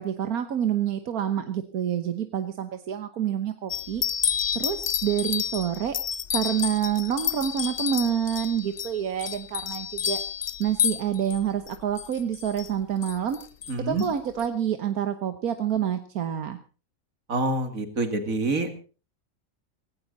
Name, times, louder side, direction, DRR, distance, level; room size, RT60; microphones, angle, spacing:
voice 1, 0.0-4.0 4.5-6.0 6.3-10.2 10.6-13.4 13.9-16.6, right 9 dB, 85° right, 9 dB, 1.6 m, -27 dB
sound 1, 3.7-11.4 11.7-12.7 13.0-13.7 14.0-14.1 14.4-14.5, left 8 dB, 45° left, 1.0 m, -30 dB
voice 2, 13.7-14.1 17.3-18.7, right 2 dB, 70° right, 8 dB, 2.9 m, -26 dB
17.5 x 17.5 x 4.1 m, 0.36 s
omnidirectional pair, 1.5 m